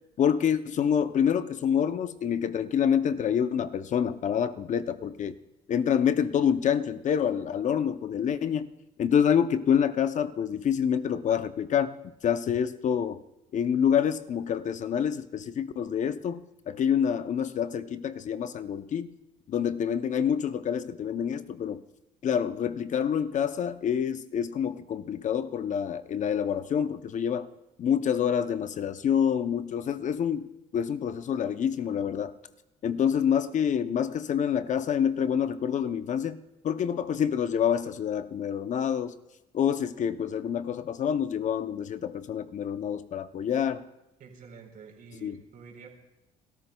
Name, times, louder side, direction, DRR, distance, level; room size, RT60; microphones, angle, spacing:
voice 1, 0.2-5.3 5.7-8.7 9.0-11.9 12.2-13.2 13.5-19.1 19.5-21.8 22.2-27.5 27.8-32.3 32.8-39.1 39.5-43.8 45.2-45.4, left 8 dB, 45° left, 11 dB, 0.6 m, -27 dB
voice 2, 44.2-45.9, right 5 dB, 60° right, 1 dB, 3.7 m, -48 dB
29.0 x 13.5 x 2.3 m, 0.91 s
cardioid pair, 110°, 17 cm